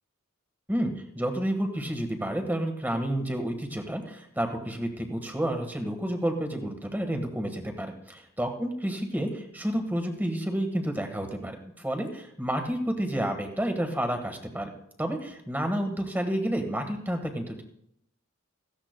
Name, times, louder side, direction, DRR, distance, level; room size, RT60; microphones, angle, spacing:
voice 1, 0.7-7.9 8.4-14.7 15.0-17.6, right 1 dB, 10° right, 5 dB, 1.4 m, -30 dB
17.0 x 14.5 x 2.2 m, 0.75 s
head